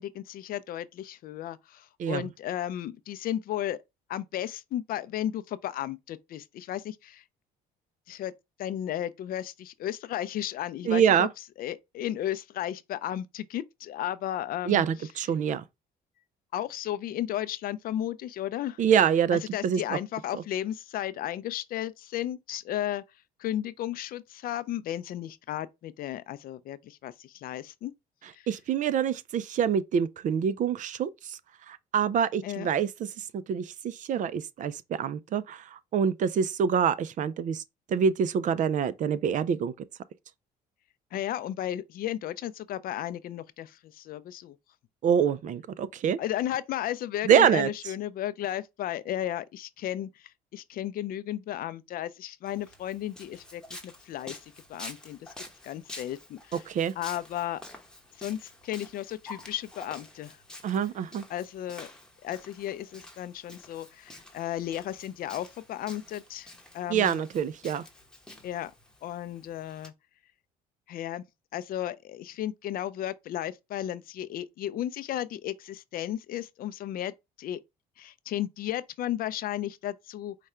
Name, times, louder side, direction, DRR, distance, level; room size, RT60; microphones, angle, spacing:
voice 1, 0.0-3.8 4.1-7.2 8.1-8.3 8.6-11.3 11.6-15.1 16.5-18.8 19.5-23.0 23.4-27.9 28.3-28.5 32.4-32.7 41.1-44.6 46.2-55.3 55.6-56.6 57.0-57.6 58.2-60.4 61.3-61.9 62.2-67.2 68.4-68.7 69.0-69.9 70.9-71.2 71.5-77.6 78.0-80.4, left 12 dB, 60° left, 0.4 m, -34 dB
voice 2, 10.9-11.3 14.7-15.6 18.8-20.0 20.3-20.4 28.5-31.4 31.7-32.9 33.2-37.6 37.9-39.7 45.0-46.2 47.2-47.7 56.7-56.9 60.6-61.2 66.9-67.8, right 8 dB, 50° right, 0.4 m, -26 dB
Walk footsteps, 52.5-69.9, left 1 dB, 5° left, 0.9 m, -48 dB
4.9 x 2.2 x 4.2 m
cardioid pair, 110°, 17 cm